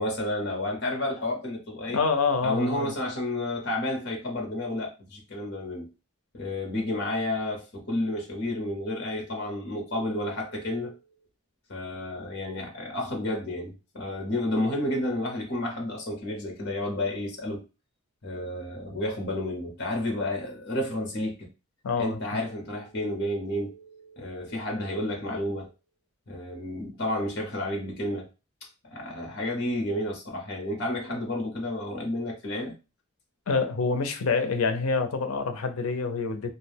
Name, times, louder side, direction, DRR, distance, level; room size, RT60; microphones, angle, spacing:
voice 1, 0.0-2.0 2.4-5.9 6.3-10.9 11.7-17.6 18.2-21.5 22.0-25.7 26.3-28.3 28.8-32.7, left 1 dB, 50° left, 0.8 m, -31 dB
voice 2, 1.9-2.9 21.8-22.4 33.5-36.5, left 4 dB, 85° left, 0.5 m, -27 dB
2.5 x 2.2 x 3.3 m
head